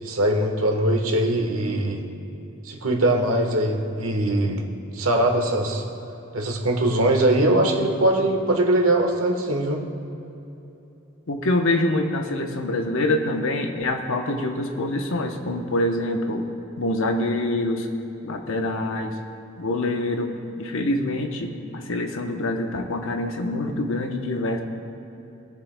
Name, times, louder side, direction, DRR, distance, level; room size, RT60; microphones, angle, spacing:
voice 1, 0.0-2.0 2.6-4.6 4.9-5.8 6.3-9.8, right 1 dB, 80° right, 2 dB, 1.3 m, -21 dB
voice 2, 11.3-16.5 16.8-17.9 18.2-19.1 19.6-20.3 20.6-24.6, left 1 dB, 70° left, 4 dB, 0.8 m, -25 dB
21.0 x 7.4 x 2.2 m, 2.9 s
head